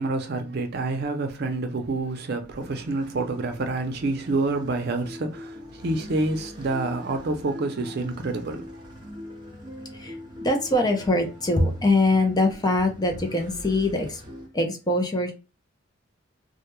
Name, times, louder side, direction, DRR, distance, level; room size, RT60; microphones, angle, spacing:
voice 1, 0.0-8.6, right 2 dB, 55° right, 0.5 m, -28 dB
sound 1, 2.5-14.5, left 1 dB, 25° right, 0.8 m, -42 dB
voice 2, 9.9-14.2 14.5-15.3, left 2 dB, 20° left, 0.5 m, -23 dB
2.2 x 2.1 x 3.0 m
head